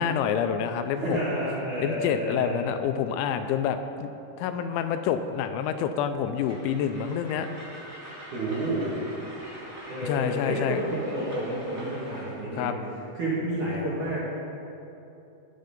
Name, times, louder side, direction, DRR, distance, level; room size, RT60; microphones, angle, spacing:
voice 1, 0.0-1.2 1.8-4.1 4.4-7.5 10.0-10.8 12.5-12.7, left 8 dB, 85° left, 8 dB, 2.8 m, -27 dB
voice 2, 1.0-2.6 8.3-8.9 9.9-12.7 13.2-14.3, right 1 dB, 50° right, -9 dB, 3.2 m, -30 dB
Train, 6.3-12.4, equal, 85° right, 0.6 m, -44 dB
19.0 x 6.6 x 5.2 m, 2.8 s
omnidirectional pair, 5.5 m